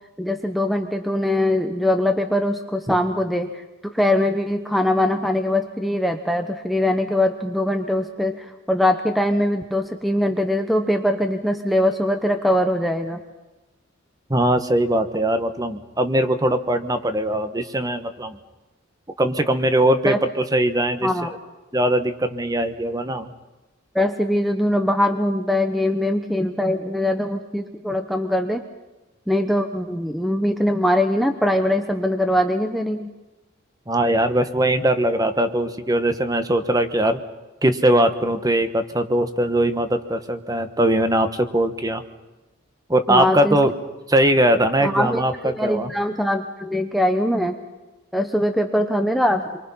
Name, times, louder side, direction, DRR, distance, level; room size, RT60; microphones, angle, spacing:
voice 1, 0.2-13.2 20.0-20.2 21.0-21.3 23.9-28.7 29.3-33.1 43.1-43.6 44.8-47.6 48.1-49.6, left 1 dB, ahead, 6 dB, 0.9 m, -22 dB
voice 2, 14.3-18.4 19.2-20.1 20.5-21.1 21.7-23.3 33.9-37.2 37.6-42.0 42.9-43.7 44.1-45.9, right 1 dB, 20° right, 9 dB, 1.2 m, -20 dB
27.5 x 23.5 x 5.7 m, 1.1 s
head